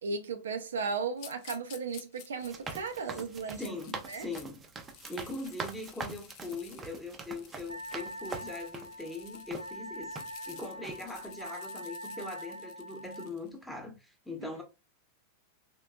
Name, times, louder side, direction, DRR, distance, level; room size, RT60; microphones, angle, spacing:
voice 1, 0.0-3.7 4.1-4.3 14.4-14.5, right 5 dB, 65° right, 0.5 m, -35 dB
sound 1, 1.2-4.4 4.8-13.5, left 10 dB, 45° left, 0.5 m, -53 dB
sound 2, 2.4-8.9 9.5-9.7 10.2-10.5 10.8-11.0, right 4 dB, 20° right, 0.6 m, -43 dB
voice 2, 3.6-4.6 5.1-10.2 10.5-14.6, left 2 dB, ahead, 0.9 m, -41 dB
Wind instrument woodwind instrument, 7.7-13.3, equal, 90° left, 0.7 m, -44 dB
3.3 x 3.0 x 2.3 m
figure-of-eight pair, 90°, 0 cm